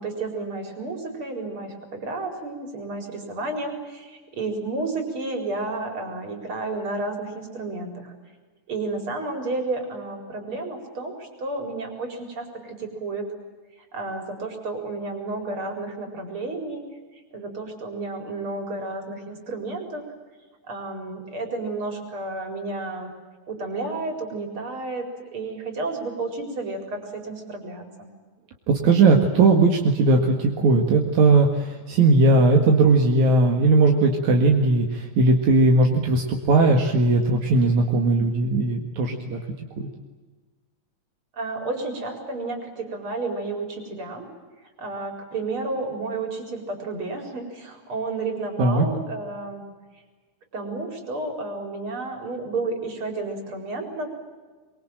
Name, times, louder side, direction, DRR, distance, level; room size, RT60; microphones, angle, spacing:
voice 1, 0.0-8.1 8.7-13.3 13.9-16.9 17.3-20.1 20.7-23.1 23.5-28.1 41.4-44.3 44.8-49.6 50.5-54.1, right 3 dB, 45° right, 4 dB, 5.4 m, -31 dB
voice 2, 28.7-39.4 39.8-39.9 48.6-48.9, right 3 dB, 70° right, 2 dB, 3.2 m, -18 dB
24.5 x 23.5 x 9.1 m, 1.3 s
omnidirectional pair, 3.4 m